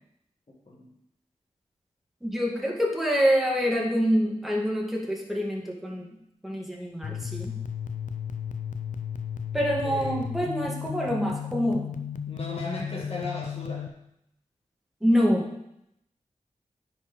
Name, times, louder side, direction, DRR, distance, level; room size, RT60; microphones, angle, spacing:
voice 1, 2.2-6.0 6.4-7.6 9.5-11.9 15.0-15.4, equal, ahead, -2 dB, 2.2 m, -26 dB
sound 1, 7.0-13.9, left 8 dB, 85° left, 0.5 m, -34 dB
voice 2, 9.8-10.2 12.3-13.8, left 2 dB, 50° left, -4 dB, 2.0 m, -36 dB
9.8 x 4.6 x 3.8 m, 0.81 s
cardioid pair, 40°, 13 cm